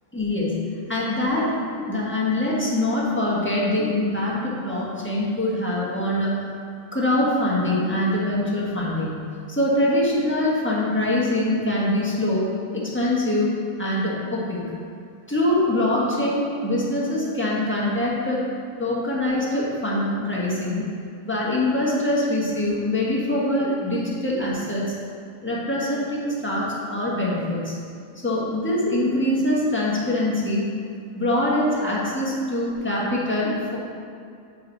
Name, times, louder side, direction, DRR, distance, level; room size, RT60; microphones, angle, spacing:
voice 1, 0.1-0.6 0.9-6.3 6.9-9.2 9.5-13.5 13.8-14.7 15.3-18.4 18.8-20.9 21.2-24.9 25.4-27.7 28.2-30.6 31.2-33.8, left 1 dB, 10° left, -6 dB, 1.3 m, -23 dB
8.4 x 5.3 x 4.0 m, 2.3 s
omnidirectional pair, 1.4 m